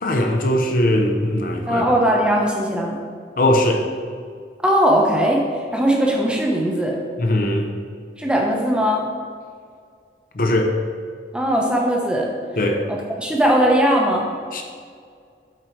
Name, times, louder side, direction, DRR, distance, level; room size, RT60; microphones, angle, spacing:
voice 1, 0.0-1.8 3.4-3.8 7.2-7.7 10.3-10.8 12.6-12.8 14.5-14.6, left 1 dB, 50° left, 2 dB, 0.7 m, -19 dB
voice 2, 1.7-3.0 4.6-5.4 5.7-7.0 8.2-9.0 11.3-12.3 12.9-14.2, equal, 5° right, -1 dB, 0.8 m, -19 dB
7.8 x 4.4 x 4.6 m, 2.1 s
head